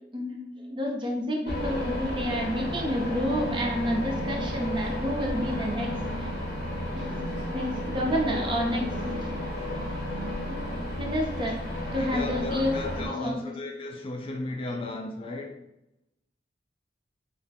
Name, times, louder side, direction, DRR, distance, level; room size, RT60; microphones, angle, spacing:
voice 1, 0.1-6.5 6.9-7.2 7.5-8.8 9.2-9.3 10.5-10.6 11.0-11.6 11.9-13.5, equal, 25° right, 0.7 m, -30 dB
sound 1, 1.5-13.1, left 1 dB, 60° left, 1.0 m, -32 dB
voice 2, 11.9-15.6, left 2 dB, 30° left, 0.3 m, -35 dB
3.2 x 2.1 x 4.1 m
head